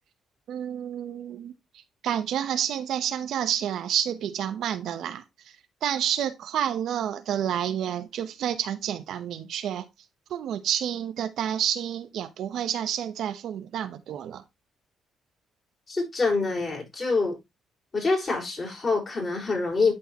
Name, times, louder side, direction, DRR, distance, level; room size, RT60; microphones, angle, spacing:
voice 1, 0.5-1.5 2.0-5.2 5.8-9.9 10.3-14.4, right 9 dB, 75° right, 0.9 m, -29 dB
voice 2, 15.9-17.4 17.9-19.9, left 3 dB, 35° left, 5.4 m, -26 dB
11.5 x 4.7 x 3.0 m
cardioid pair, 90°, 0 cm